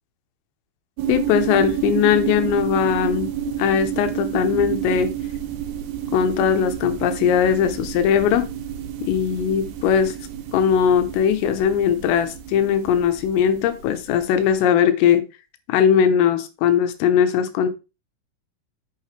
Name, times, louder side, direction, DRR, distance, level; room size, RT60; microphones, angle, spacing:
sound 1, 1.0-14.4, right 10 dB, 85° right, 2.1 m, -29 dB
voice 1, 1.1-3.3 3.6-5.1 6.1-8.5 9.0-10.2 10.5-15.3 15.7-17.7, left 8 dB, 80° left, 3.5 m, -19 dB
8.8 x 6.6 x 3.3 m
omnidirectional pair, 5.9 m